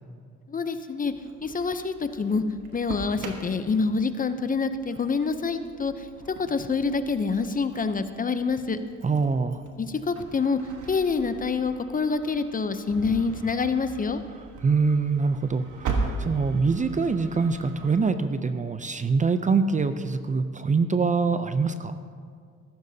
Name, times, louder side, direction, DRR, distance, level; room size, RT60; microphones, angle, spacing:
voice 1, 0.5-1.1 1.4-2.4 2.7-6.1 6.4-8.8 9.8-10.6 10.9-14.2, left 4 dB, 30° left, 10 dB, 0.6 m, -26 dB
Engine starting, 1.0-18.0, right 3 dB, 80° right, 1.4 m, -39 dB
voice 2, 9.0-9.6 14.6-21.9, right 4 dB, 25° right, 10 dB, 0.5 m, -24 dB
14.5 x 13.5 x 2.8 m, 2.1 s
cardioid pair, 90°, 30 cm